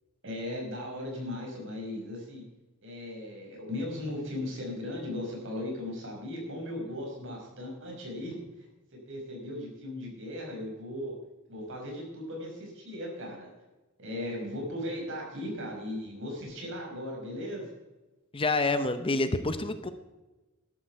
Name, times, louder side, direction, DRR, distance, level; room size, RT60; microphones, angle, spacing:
voice 1, 0.2-2.4 2.8-8.4 9.1-11.1 11.5-13.5 14.0-17.7, left 1 dB, 60° right, 0 dB, 5.4 m, -37 dB
voice 2, 18.3-19.9, left 2 dB, 25° left, 10 dB, 0.8 m, -27 dB
13.0 x 12.5 x 4.6 m, 1.1 s
head